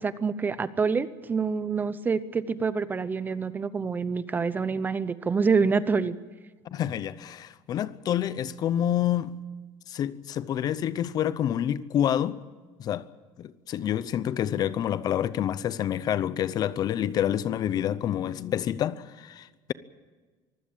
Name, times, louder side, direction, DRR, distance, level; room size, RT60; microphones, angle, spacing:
voice 1, 0.0-6.2, right 5 dB, 20° right, 0.7 m, -26 dB
voice 2, 6.7-9.4 9.9-12.4 12.8-13.1 13.4-19.7, left 10 dB, 40° left, 0.7 m, -28 dB
24.0 x 16.0 x 8.8 m
cardioid pair, 170°, 10 cm